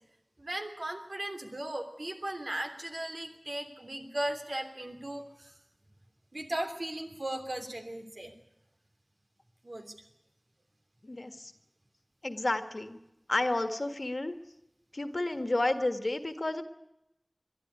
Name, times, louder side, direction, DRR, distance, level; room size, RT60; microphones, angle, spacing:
voice 1, 0.4-5.5 6.3-8.3 9.6-9.9, right 1 dB, 70° right, 4 dB, 3.2 m, -37 dB
voice 2, 11.0-11.5 12.2-13.0 13.3-14.3 14.9-16.6, left 2 dB, 75° left, 9 dB, 1.7 m, -31 dB
22.0 x 13.0 x 9.8 m, 0.86 s
wide cardioid pair, 45°, 0 cm